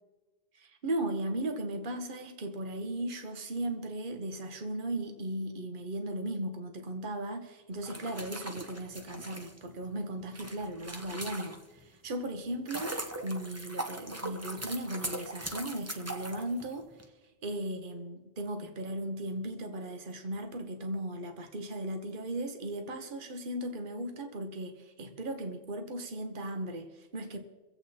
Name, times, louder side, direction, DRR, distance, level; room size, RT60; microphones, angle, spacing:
voice 1, 0.5-16.9 17.4-27.4, right 1 dB, 45° right, 6 dB, 1.3 m, -37 dB
sound 1, 7.8-11.9 12.3-17.0, right 1 dB, 15° right, 0.9 m, -40 dB
24.5 x 8.3 x 4.2 m, 1.2 s
omnidirectional pair, 1.2 m